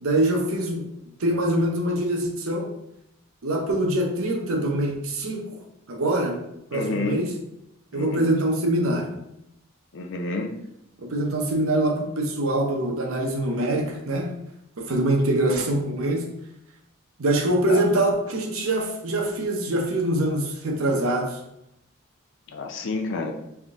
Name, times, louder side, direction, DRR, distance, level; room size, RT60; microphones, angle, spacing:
voice 1, 0.0-0.8 1.2-2.7 3.4-5.5 5.9-6.4 6.7-7.3 7.9-9.1 11.0-14.3 14.8-16.2 17.2-21.4, right 1 dB, 70° right, 2 dB, 0.7 m, -24 dB
voice 2, 6.7-7.2 7.9-8.3 9.9-10.6 17.7-17.9 22.5-23.3, left 3 dB, 60° left, 4 dB, 0.5 m, -29 dB
3.5 x 2.7 x 3.5 m, 0.81 s
head